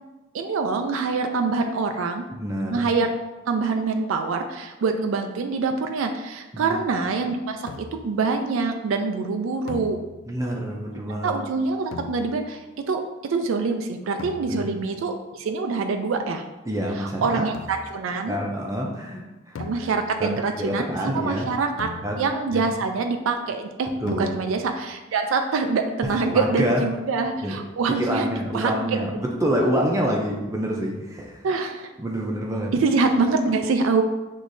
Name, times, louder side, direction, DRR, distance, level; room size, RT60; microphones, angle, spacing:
voice 1, 0.3-2.2 2.7-3.1 3.5-10.0 11.2-12.6 12.9-16.4 17.0-18.4 19.6-29.0 31.4-31.9 32.7-34.0, right 4 dB, 85° right, 6 dB, 0.4 m, -25 dB
voice 2, 2.3-2.9 6.5-6.8 10.3-11.3 14.5-14.7 16.7-17.5 18.2-19.6 20.2-21.5 22.0-22.2 22.5-22.7 24.0-24.3 26.3-26.9 27.4-27.6 27.9-31.4 32.0-32.7, equal, 15° right, -1 dB, 0.4 m, -27 dB
sound 1, 7.7-8.2 9.7-10.5 11.9-12.7 14.2-14.9 17.5-18.1 19.6-20.4 21.8-22.6 24.1-24.8, left 4 dB, 85° left, 0.3 m, -39 dB
6.3 x 3.1 x 2.6 m, 1.1 s
head